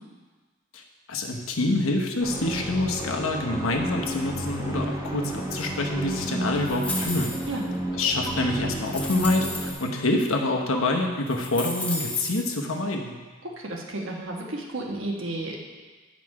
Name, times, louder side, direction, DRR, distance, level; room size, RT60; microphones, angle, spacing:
voice 1, 1.1-7.3 7.9-13.1, left 2 dB, 75° left, 2 dB, 1.0 m, -26 dB
sound 1, 2.2-9.7, right 1 dB, 15° right, 1.1 m, -31 dB
sound 2, 6.6-7.6 8.3-8.4 8.9-9.8 10.7-10.8 11.3-12.5, left 1 dB, 5° left, 0.9 m, -33 dB
voice 2, 13.4-15.6, right 2 dB, 65° right, -1 dB, 1.3 m, -32 dB
9.5 x 5.1 x 4.8 m, 1.4 s
head